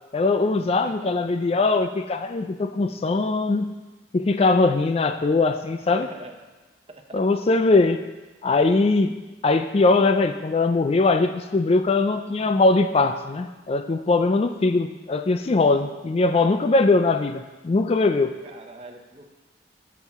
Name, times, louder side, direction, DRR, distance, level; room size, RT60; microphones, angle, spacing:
voice 1, 0.1-3.8 4.1-6.1 7.1-8.0 8.4-9.1 9.4-18.3, left 3 dB, 35° left, 8 dB, 0.4 m, -21 dB
voice 2, 5.9-6.4 6.9-7.2 16.3-16.7 18.4-19.3, right 2 dB, 35° right, 4 dB, 0.9 m, -42 dB
13.0 x 7.2 x 3.6 m, 1.2 s
head